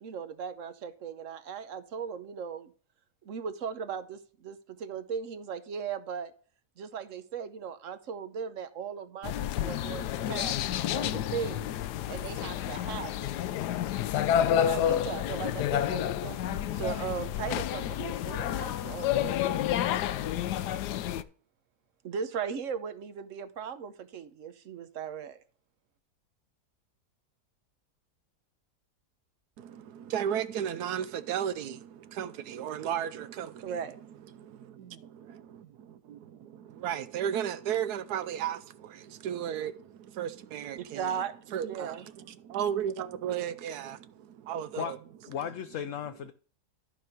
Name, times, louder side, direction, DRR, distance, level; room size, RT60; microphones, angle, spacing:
voice 1, 0.0-2.7 3.2-6.3 6.8-11.7 12.1-13.3 14.5-19.9 22.0-25.4 33.6-34.0 40.8-41.4 41.6-42.0, right 7 dB, 60° right, 1.0 m, -38 dB
sound 1, 9.2-21.2, left 11 dB, 80° left, 1.2 m, -30 dB
voice 2, 29.6-35.4 36.1-36.2 36.6-45.0, right 9 dB, 75° right, 1.2 m, -35 dB
voice 3, 45.3-46.3, left 8 dB, 65° left, 0.8 m, -35 dB
13.0 x 5.2 x 4.4 m
omnidirectional pair, 1.7 m